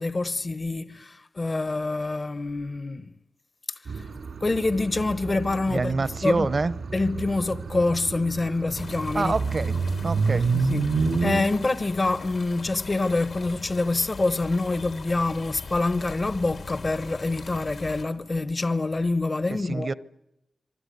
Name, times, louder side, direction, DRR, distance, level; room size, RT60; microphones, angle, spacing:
voice 1, 0.0-3.1 3.7-4.1 4.4-6.5 6.9-9.3 10.3-19.9, left 2 dB, 45° left, 1.0 m, -26 dB
sound 1, 3.9-11.4, right 4 dB, 90° right, 3.1 m, -29 dB
voice 2, 5.7-6.7 9.1-9.8 10.0-10.4 19.5-19.9, right 3 dB, 55° right, 0.9 m, -26 dB
sound 2, 8.8-18.0, left 4 dB, 85° left, 3.5 m, -41 dB
26.0 x 23.5 x 9.5 m
cardioid pair, 60°, 0 cm